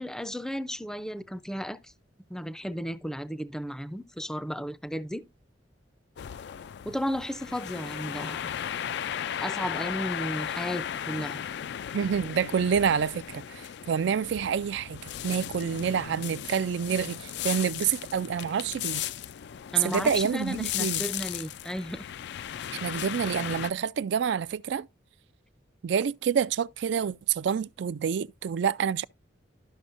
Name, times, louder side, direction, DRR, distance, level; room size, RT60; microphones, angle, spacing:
voice 1, 0.0-1.9 2.3-5.3 6.8-8.5 9.4-11.4 19.7-22.1, equal, 5° left, 0.4 m, -34 dB
sound 1, 6.2-23.7, left 10 dB, 65° left, 0.4 m, -36 dB
voice 2, 11.9-19.0 19.8-21.0 22.7-24.9 25.8-29.1, right 7 dB, 65° right, 0.3 m, -28 dB
12.0 x 6.1 x 2.5 m
head